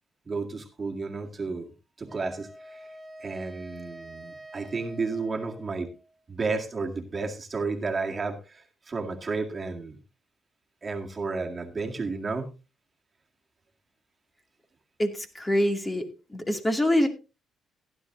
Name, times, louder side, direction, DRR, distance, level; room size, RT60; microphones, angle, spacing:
voice 1, 0.3-1.7 2.0-2.8 3.2-5.9 6.3-10.0 10.8-12.5, right 4 dB, 30° right, 2 dB, 2.0 m, -32 dB
Wind instrument woodwind instrument, 2.1-6.2, right 1 dB, 15° right, 2.3 m, -47 dB
voice 2, 15.0-17.1, left 1 dB, 20° left, 5 dB, 2.4 m, -25 dB
15.5 x 11.0 x 2.7 m, 0.29 s
cardioid pair, 90°, 0 cm